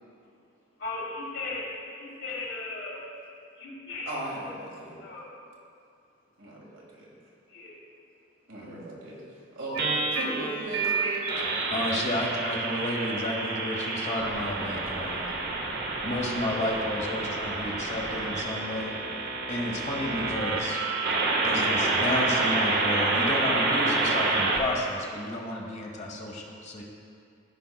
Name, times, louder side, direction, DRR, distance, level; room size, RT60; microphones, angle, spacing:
voice 1, 0.8-3.0 3.6-4.1 5.0-5.3 7.5-7.8, left 3 dB, 60° left, -4 dB, 1.9 m, -37 dB
voice 2, 4.1-5.0 6.4-7.1 8.5-9.2 9.5-11.5, right 1 dB, 75° right, -4 dB, 1.8 m, -37 dB
sound 1, 9.8-24.6, right 3 dB, 50° right, 0.8 m, -28 dB
voice 3, 11.4-15.3 16.0-18.9 19.5-20.8 21.4-26.8, left 1 dB, 35° left, 0 dB, 1.0 m, -32 dB
15.0 x 5.4 x 2.3 m, 2.4 s
head